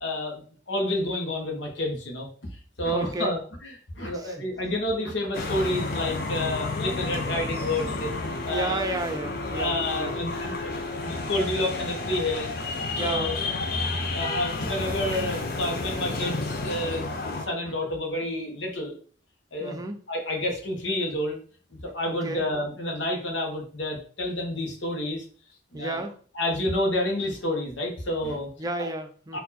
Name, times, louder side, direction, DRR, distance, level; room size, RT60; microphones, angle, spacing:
voice 1, 0.0-2.3 2.8-3.4 4.0-8.8 9.5-12.5 12.9-13.3 13.7-13.8 14.1-17.1 17.4-19.0 19.5-19.8 20.1-21.4 21.8-25.2 25.7-26.0 26.3-28.5 28.8-28.9 29.3-29.4, left 1 dB, 80° left, 1 dB, 1.2 m, -29 dB
voice 2, 2.9-3.3 4.1-4.4 8.5-10.2 12.9-13.4 19.6-20.0 22.1-22.5 25.7-26.1 28.6-29.4, right 2 dB, 20° right, 6 dB, 0.4 m, -32 dB
sound 1, 5.3-17.5, left 3 dB, 55° left, 0.7 m, -31 dB
4.3 x 2.7 x 4.2 m, 0.43 s
head